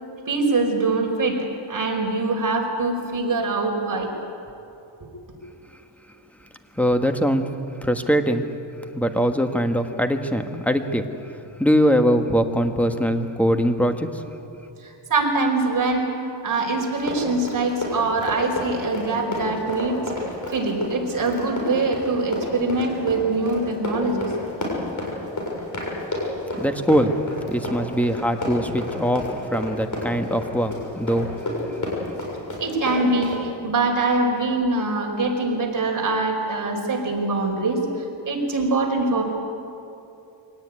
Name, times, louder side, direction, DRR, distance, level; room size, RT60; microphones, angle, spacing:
voice 1, 0.3-4.1 14.8-16.2 16.4-20.0 20.5-24.3 32.6-39.2, right 3 dB, 45° right, 1 dB, 4.8 m, -23 dB
voice 2, 6.8-7.5 7.8-8.4 8.9-11.3 11.6-14.2 26.6-27.2 27.5-31.3, equal, 5° left, 6 dB, 1.4 m, -22 dB
Run, 16.9-33.4, left 2 dB, 40° left, 6.9 m, -30 dB
24.0 x 18.0 x 9.7 m, 2.8 s
wide cardioid pair, 120°, 46 cm